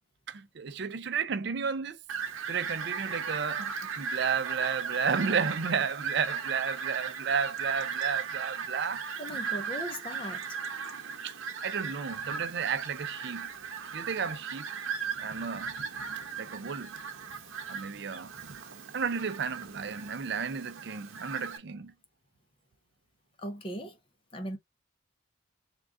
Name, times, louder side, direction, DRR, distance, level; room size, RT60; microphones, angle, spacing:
voice 1, 0.3-2.0 2.5-9.0 11.2-11.4 11.6-13.5 13.9-14.7 15.2-15.7 16.4-17.0 17.7-18.3 18.9-21.9, right 6 dB, 55° right, 0.4 m, -32 dB
Fowl, 2.1-21.6, right 6 dB, 90° right, 0.8 m, -37 dB
voice 2, 9.2-10.6 23.4-24.0 24.3-24.6, equal, 25° left, 0.6 m, -38 dB
3.7 x 2.3 x 3.5 m
head